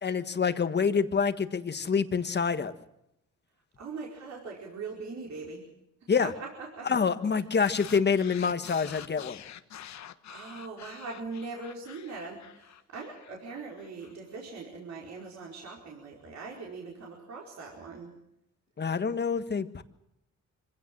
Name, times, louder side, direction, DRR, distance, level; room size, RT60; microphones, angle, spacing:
voice 1, 0.0-2.7 6.1-6.3 6.8-9.4 18.8-19.8, left 6 dB, 35° left, 10 dB, 1.6 m, -27 dB
voice 2, 3.8-5.6 6.2-6.9 10.3-18.1, right 4 dB, 65° right, -2 dB, 4.8 m, -41 dB
sound 1, 7.6-14.1, left 10 dB, 65° left, 1.3 m, -47 dB
25.0 x 16.5 x 7.6 m, 0.82 s
cardioid pair, 90°, 30 cm